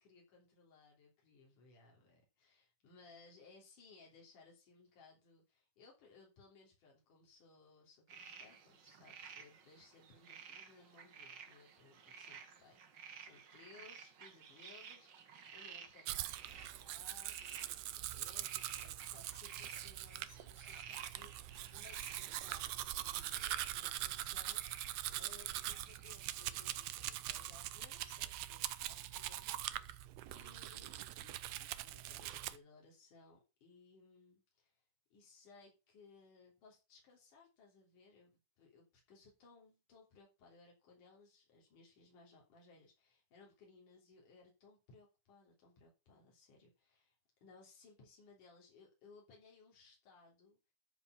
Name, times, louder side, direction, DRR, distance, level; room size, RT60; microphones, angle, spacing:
voice 1, 0.0-24.7 25.2-34.8 35.1-47.2 47.4-50.6, left 4 dB, 85° left, -2 dB, 4.7 m, -63 dB
sound 1, 8.1-27.8, right 7 dB, 55° right, 1.4 m, -55 dB
Domestic sounds home sounds, 16.1-32.6, right 14 dB, 75° right, 1.6 m, -43 dB
13.0 x 4.8 x 5.8 m, 0.28 s
omnidirectional pair, 3.5 m